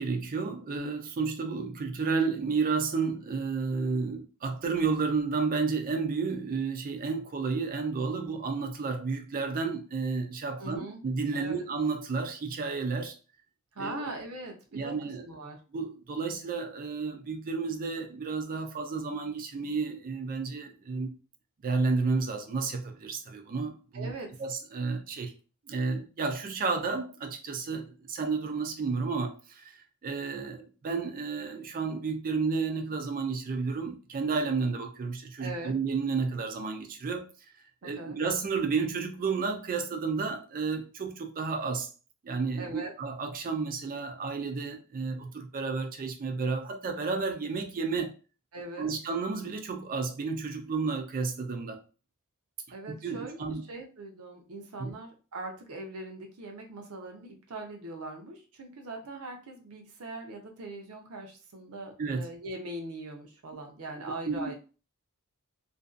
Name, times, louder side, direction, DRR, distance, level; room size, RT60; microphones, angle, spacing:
voice 1, 0.0-13.1 13.8-14.1 14.7-15.3 15.7-21.1 21.6-24.1 24.4-25.3 25.7-37.3 37.8-41.9 42.2-48.1 48.8-51.8 52.9-53.6 54.8-54.9 62.0-62.3 64.3-64.5, right 4 dB, 40° right, 0.4 m, -31 dB
voice 2, 10.6-11.0 11.3-11.6 13.7-15.0 15.2-15.6 23.9-24.3 35.4-35.7 37.8-38.2 42.6-42.9 48.5-48.9 52.7-64.5, right 2 dB, 75° right, 0.6 m, -41 dB
2.5 x 2.2 x 2.4 m
head